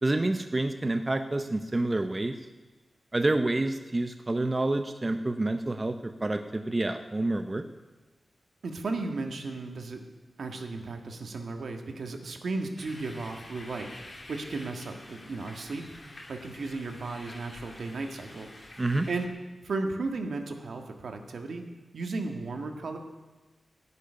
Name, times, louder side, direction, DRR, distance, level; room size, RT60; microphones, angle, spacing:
voice 1, 0.0-2.3 3.1-7.6 18.8-19.1, right 2 dB, 25° right, 7 dB, 0.7 m, -28 dB
voice 2, 8.6-10.0 10.4-13.9 14.3-15.8 16.3-18.5 19.1-19.3 19.6-21.6 21.9-23.0, right 3 dB, 75° right, 4 dB, 1.6 m, -35 dB
sound 1, 12.8-19.3, left 1 dB, 40° left, 2.5 m, -48 dB
15.0 x 6.9 x 9.9 m, 1.2 s
wide cardioid pair, 80°, 0 cm